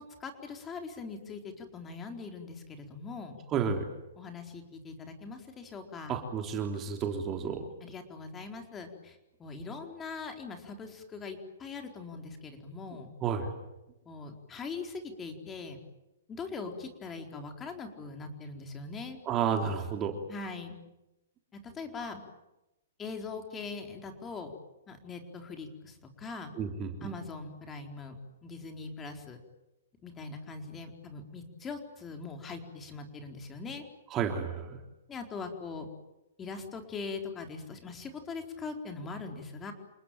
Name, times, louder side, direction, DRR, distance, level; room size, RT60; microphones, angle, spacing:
voice 1, 0.0-3.4 4.2-6.2 7.8-13.1 14.1-15.8 16.3-19.2 20.3-20.8 21.5-22.2 23.0-24.5 24.9-26.5 27.0-28.2 28.4-29.4 30.0-33.8 35.1-35.9 36.4-39.7, left 4 dB, 15° left, 4 dB, 4.3 m, -41 dB
voice 2, 3.5-3.9 6.1-7.7 13.2-13.6 19.2-20.2 26.6-27.1 34.1-34.8, right 7 dB, 25° right, 4 dB, 3.3 m, -31 dB
29.0 x 20.0 x 9.1 m, 0.94 s
hypercardioid pair, 140°, 0 cm